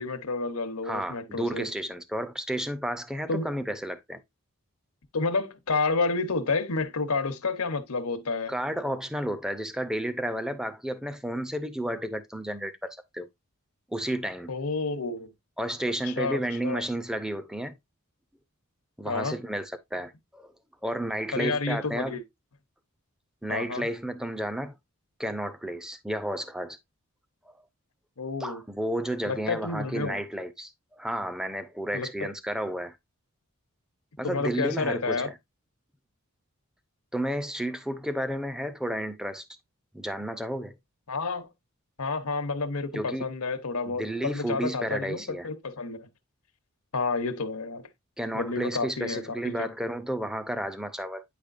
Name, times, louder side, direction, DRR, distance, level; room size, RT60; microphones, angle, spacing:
voice 1, 0.0-1.7 3.3-3.5 5.1-8.5 14.5-15.3 16.0-16.8 19.1-19.4 21.3-22.2 23.5-23.9 28.2-28.6 29.3-30.2 31.9-32.3 34.2-35.3 41.1-41.5 42.0-46.1 46.9-47.8 48.3-49.7, left 3 dB, 85° left, 0.9 m, -30 dB
voice 2, 0.8-4.2 8.5-13.3 13.9-14.5 15.6-17.7 19.0-20.5 20.8-22.2 23.4-24.7 25.2-26.8 27.5-27.6 28.4-33.0 34.2-35.4 37.1-39.4 39.9-40.7 42.9-43.3 43.9-45.5 48.2-51.2, right 1 dB, 5° right, 0.5 m, -32 dB
8.8 x 5.0 x 2.5 m
head